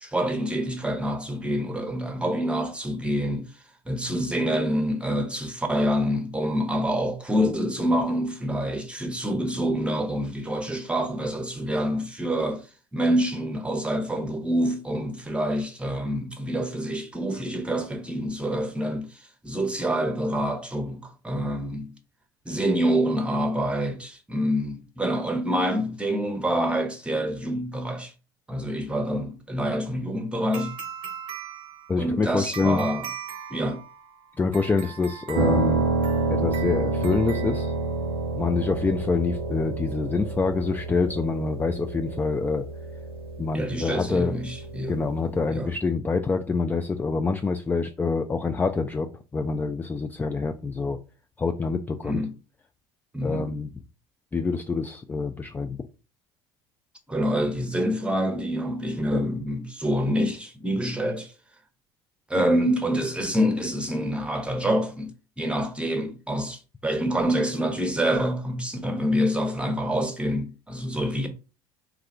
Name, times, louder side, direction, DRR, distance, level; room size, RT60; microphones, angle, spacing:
voice 1, 0.0-3.4 3.9-12.7 12.9-21.9 22.5-28.1 28.5-30.7 32.0-33.1 33.5-33.8 43.5-45.0 45.5-45.7 52.0-52.3 53.1-53.5 57.1-61.3 62.3-65.1 65.4-71.3, equal, 10° right, 0.9 m, -26 dB
sound 1, 30.5-38.2, right 8 dB, 40° right, 0.7 m, -40 dB
voice 2, 31.9-32.8 34.4-35.9 36.3-37.7 38.3-42.6 43.4-44.4 44.9-49.1 49.3-51.0 51.4-52.2 53.2-53.7 54.3-55.8, left 4 dB, 15° left, 0.3 m, -26 dB
Piano, 35.3-45.5, right 3 dB, 80° right, 0.6 m, -29 dB
3.5 x 2.4 x 3.2 m
figure-of-eight pair, 65°, 12 cm